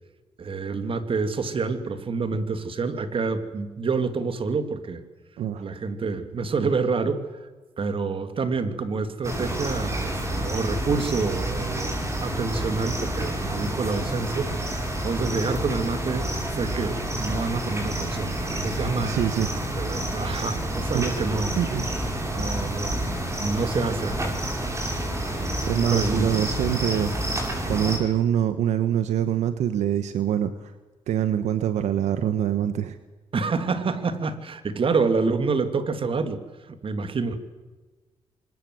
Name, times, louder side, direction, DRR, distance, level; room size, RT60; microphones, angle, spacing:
voice 1, 0.4-5.0 5.6-7.2 7.8-19.2 19.7-21.6 22.4-24.3 25.3-26.4 33.3-36.4 36.7-37.4, right 4 dB, 50° right, 9 dB, 2.7 m, -28 dB
sound 1, 9.2-28.0, right 1 dB, 25° right, 7.7 m, -29 dB
voice 2, 19.0-19.5 20.9-21.1 21.6-21.9 25.4-27.1 27.4-30.7 31.1-33.0, right 10 dB, 80° right, 11 dB, 1.2 m, -25 dB
25.0 x 22.0 x 7.9 m, 1.3 s
cardioid pair, 70°, 12 cm